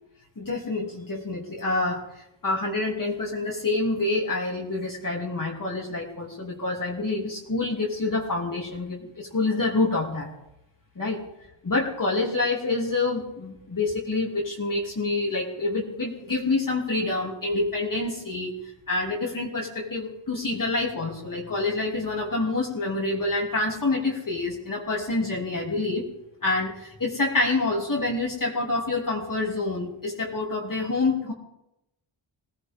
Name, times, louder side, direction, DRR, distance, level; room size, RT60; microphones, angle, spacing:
voice 1, 0.4-10.3 10.9-11.2 11.6-26.1 26.4-31.3, left 2 dB, 40° left, -3 dB, 3.1 m, -27 dB
22.0 x 17.5 x 3.7 m, 0.87 s
wide cardioid pair, 100°, 49 cm